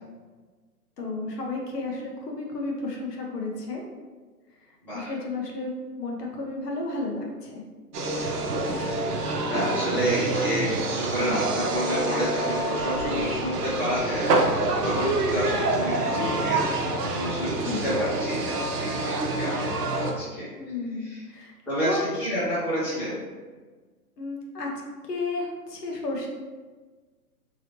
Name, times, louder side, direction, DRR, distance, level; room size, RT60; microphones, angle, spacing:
voice 1, 1.0-3.8 4.9-5.7 6.0-7.6 17.6-17.8 20.6-21.5 21.8-22.0 24.2-24.7 25.1-26.3, left 3 dB, 75° left, -1 dB, 1.0 m, -32 dB
sound 1, 7.9-20.1, right 2 dB, 70° right, 0.7 m, -27 dB
voice 2, 9.5-20.5 21.0-21.2 21.7-23.2, equal, 5° left, -14 dB, 0.7 m, -30 dB
3.0 x 2.9 x 2.9 m, 1.4 s
hypercardioid pair, 140°, 48 cm